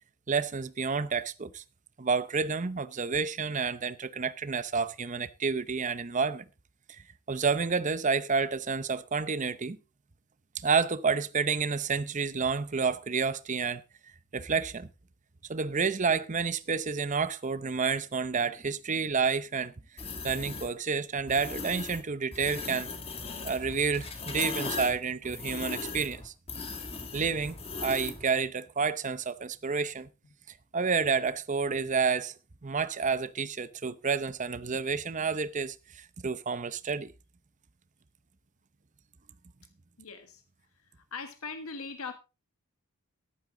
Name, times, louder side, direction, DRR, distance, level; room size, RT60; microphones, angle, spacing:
voice 1, 0.3-1.6 2.0-6.4 6.9-9.8 10.6-13.8 14.3-14.9 15.5-19.7 20.2-22.9 23.4-26.3 27.1-27.6 27.8-30.1 30.7-32.3 32.6-37.1, right 5 dB, 35° right, 0.7 m, -29 dB
sound 1, 20.0-20.7 21.3-22.0 22.3-28.2, left 4 dB, 25° left, 2.0 m, -38 dB
voice 2, 40.0-40.4 40.8-42.1, left 4 dB, 80° left, 1.6 m, -40 dB
14.0 x 11.5 x 3.8 m
head